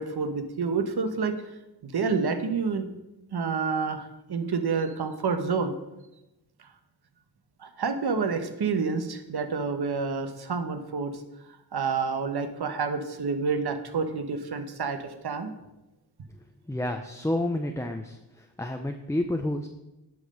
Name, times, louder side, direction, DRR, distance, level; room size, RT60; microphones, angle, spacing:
voice 1, 0.0-1.4 1.8-2.8 3.3-5.7 7.6-11.1 11.7-15.5, right 5 dB, 60° right, 8 dB, 1.2 m, -28 dB
voice 2, 16.7-18.2 18.6-19.7, left 1 dB, 5° left, 4 dB, 0.7 m, -29 dB
9.5 x 5.4 x 6.6 m, 0.96 s
cardioid pair, 75°, 43 cm